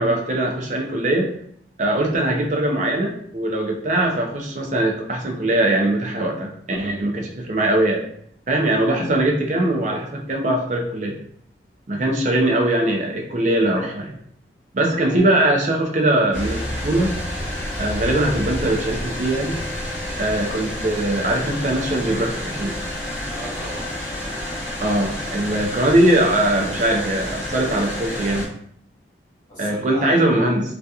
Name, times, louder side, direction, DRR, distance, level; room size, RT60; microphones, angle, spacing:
voice 1, 0.0-1.3 1.8-8.0 8.5-11.2 11.9-14.1 14.7-17.2 17.8-19.6 20.2-22.8 24.8-28.5 29.6-30.6, right 1 dB, 40° right, 1 dB, 0.5 m, -21 dB
voice 2, 14.9-15.2 23.3-24.4 29.5-30.3, right 1 dB, 50° left, -10 dB, 0.9 m, -37 dB
sound 1, 16.3-28.5, left 1 dB, 15° left, 0.8 m, -29 dB
2.7 x 2.4 x 2.3 m, 0.67 s
head